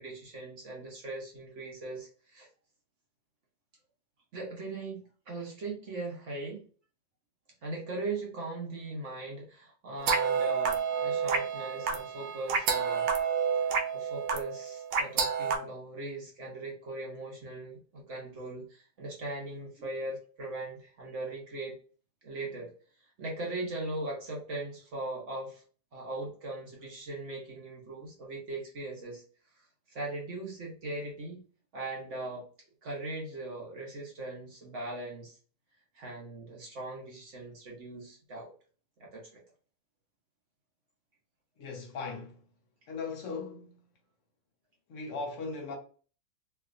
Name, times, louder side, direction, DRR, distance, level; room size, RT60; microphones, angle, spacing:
voice 1, 0.0-2.5 4.3-6.6 7.6-13.1 13.6-21.8 22.2-22.7 23.2-25.6 25.9-29.2 29.6-31.4 31.7-32.5 32.8-35.4 35.9-38.5 39.0-39.4, right 2 dB, 55° right, 1.0 m, -39 dB
sound 1, 10.0-15.6, right 6 dB, 90° right, 1.2 m, -29 dB
voice 2, 41.6-42.4 42.9-43.7 44.9-45.8, left 4 dB, 55° left, 1.1 m, -38 dB
3.1 x 2.8 x 2.4 m
omnidirectional pair, 1.8 m